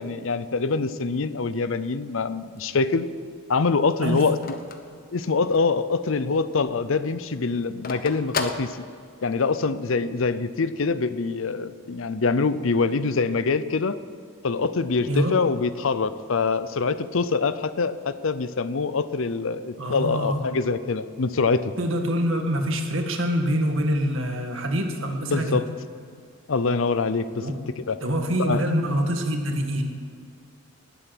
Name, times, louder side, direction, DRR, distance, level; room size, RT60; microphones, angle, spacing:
voice 1, 0.0-3.1 3.5-4.6 5.1-8.8 9.2-14.0 14.4-21.7 25.2-25.7 26.5-27.5 27.8-28.0 28.4-28.6, left 4 dB, 65° left, 14 dB, 0.6 m, -24 dB
Telephone, 2.4-5.8 6.2-6.3 6.5-9.4, left 4 dB, 40° left, 0.9 m, -34 dB
voice 2, 19.8-20.4 21.8-25.6 27.4-27.6 28.0-29.8, equal, 65° right, 4 dB, 1.7 m, -25 dB
19.5 x 7.9 x 6.0 m, 2.3 s
head